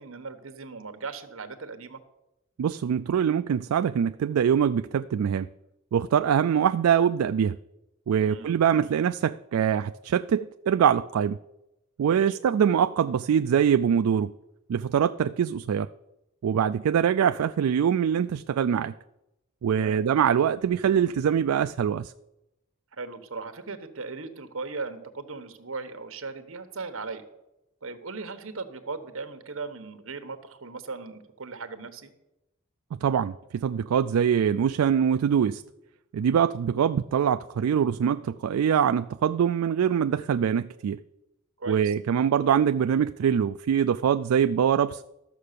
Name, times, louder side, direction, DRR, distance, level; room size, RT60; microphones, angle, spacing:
voice 1, 0.0-2.0 8.2-8.5 12.1-12.4 19.7-20.0 22.9-27.3 27.8-32.1 41.6-41.9, right 4 dB, 70° right, 1.2 m, -38 dB
voice 2, 2.6-5.5 5.9-7.6 8.1-11.4 12.0-14.3 14.7-15.9 16.4-18.9 19.6-22.1 33.0-35.6 36.1-41.0 41.7-45.0, right 8 dB, 90° right, 0.3 m, -23 dB
13.0 x 6.5 x 6.7 m
head